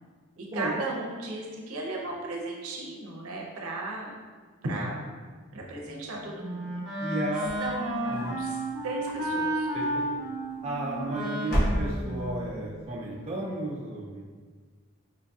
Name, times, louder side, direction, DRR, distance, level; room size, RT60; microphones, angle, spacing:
voice 1, 0.4-4.2 4.6-5.0 5.5-7.0 7.6-8.6 8.8-9.7, right 2 dB, 70° right, -1 dB, 0.6 m, -35 dB
Wind instrument woodwind instrument, 5.9-13.0, right 1 dB, 5° right, 0.8 m, -33 dB
voice 2, 7.0-7.5 8.1-8.4 9.7-10.0 10.6-14.2, right 2 dB, 30° right, -5 dB, 0.4 m, -33 dB
sound 1, 7.3-8.5 8.9-9.6 10.6-11.1 11.4-12.3, equal, 45° left, 0.7 m, -31 dB
4.5 x 2.6 x 2.3 m, 1.5 s
head